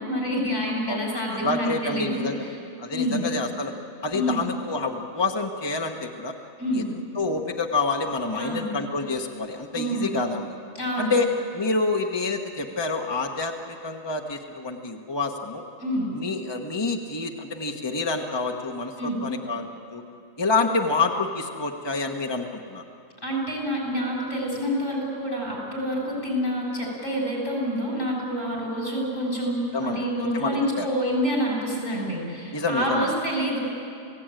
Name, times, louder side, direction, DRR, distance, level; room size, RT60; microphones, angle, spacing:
voice 1, 0.0-2.5 2.9-3.2 4.1-4.4 6.6-6.9 8.3-8.7 9.7-10.1 10.8-11.1 15.8-16.1 19.0-19.2 23.2-33.6, equal, 70° left, -2 dB, 7.6 m, -27 dB
voice 2, 1.3-2.4 2.8-3.7 4.0-6.4 6.7-10.5 11.0-11.3 11.5-15.6 16.1-19.6 19.9-20.0 20.4-22.8 29.7-30.9 32.5-33.1, left 3 dB, 20° left, 2 dB, 1.2 m, -28 dB
28.5 x 17.5 x 9.1 m, 2.7 s
omnidirectional pair, 1.3 m